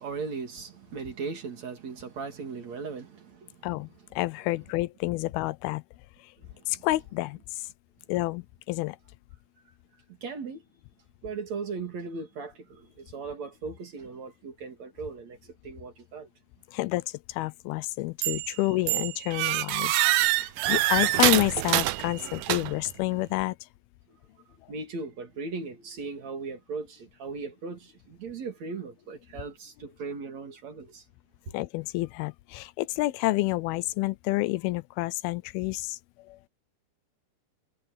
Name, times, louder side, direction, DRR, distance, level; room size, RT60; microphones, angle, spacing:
voice 1, 0.0-3.7 6.5-6.9 10.2-10.6 11.2-16.3 24.7-31.0, right 4 dB, 50° right, 3.7 m, -38 dB
voice 2, 4.2-5.8 6.7-7.4 8.1-9.0 16.7-19.9 20.3-23.6 31.5-36.0 36.3-36.4, left 19 dB, 85° left, 2.5 m, -29 dB
sound 1, 18.2-18.6 18.9-22.9, right 17 dB, 75° right, 2.2 m, -25 dB
omnidirectional pair, 4.4 m